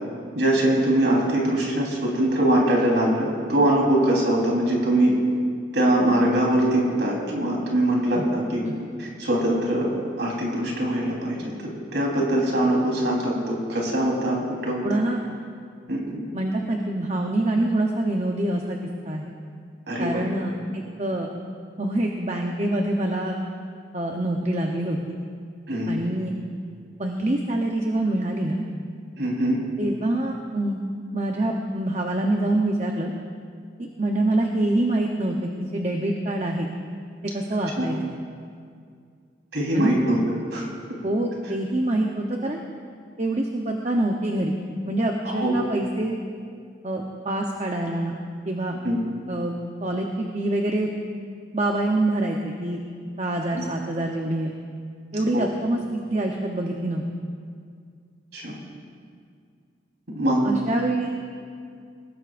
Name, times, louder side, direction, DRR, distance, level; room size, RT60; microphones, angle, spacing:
voice 1, 0.3-5.1 5.7-8.6 9.0-9.9 10.2-11.4 11.9-15.0 15.9-16.2 19.9-20.2 25.7-25.9 29.2-29.6 37.8-37.9 39.5-40.2 40.5-40.7 45.2-45.6 48.8-49.0 53.5-53.6 55.3-55.5 58.3-58.5 60.1-60.4, right 1 dB, 70° right, -3 dB, 3.8 m, -22 dB
voice 2, 14.8-15.2 16.3-18.8 19.0-19.3 20.0-21.3 21.8-23.4 23.9-25.2 25.9-26.4 27.0-28.7 29.8-30.8 31.1-33.1 33.8-36.7 37.2-38.0 39.7-40.0 41.0-42.6 43.2-44.6 44.9-46.1 46.8-48.2 48.5-48.8 49.3-49.5 49.8-50.1 50.3-50.9 51.5-52.8 53.2-54.5 55.1-55.8 56.1-57.0 60.2-61.2, right 1 dB, 35° right, 1 dB, 0.8 m, -25 dB
20.5 x 17.0 x 2.6 m, 2.2 s
head